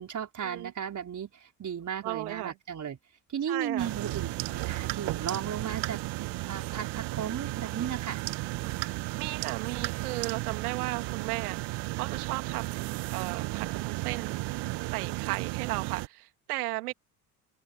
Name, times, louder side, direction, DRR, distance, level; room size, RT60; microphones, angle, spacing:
voice 1, 0.0-3.0 3.3-6.0 6.5-8.2, right 8 dB, 40° right, 5.3 m, -35 dB
voice 2, 2.0-2.5 3.5-3.9 8.6-8.7 9.2-14.4 14.8-16.9, right 20 dB, 75° right, 2.7 m, -35 dB
sound 1, 3.8-16.1, right 20 dB, 60° right, 1.9 m, -34 dB
hypercardioid pair, 60°, 45 cm